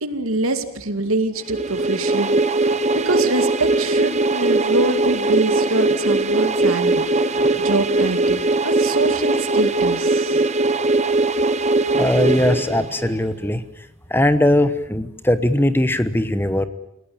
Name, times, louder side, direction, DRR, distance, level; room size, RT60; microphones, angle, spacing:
voice 1, 0.0-10.4, right 2 dB, 85° right, 8 dB, 2.4 m, -25 dB
sound 1, 1.5-13.3, right 2 dB, 35° right, 1.0 m, -20 dB
voice 2, 11.9-13.6 14.1-16.7, left 1 dB, 10° left, 12 dB, 1.0 m, -19 dB
29.5 x 17.0 x 8.9 m, 0.82 s
head